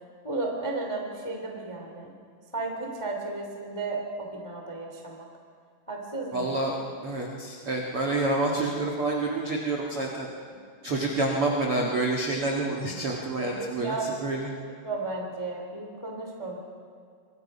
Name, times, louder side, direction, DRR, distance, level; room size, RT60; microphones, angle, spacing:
voice 1, 0.2-2.1 2.5-5.3 5.9-6.6 13.4-14.1 14.8-16.6, right 3 dB, 20° left, 1 dB, 0.8 m, -34 dB
voice 2, 6.3-6.8 7.0-10.3 10.8-14.5, right 2 dB, 70° right, -1 dB, 1.3 m, -28 dB
26.5 x 23.0 x 5.5 m, 2.2 s
omnidirectional pair, 6.0 m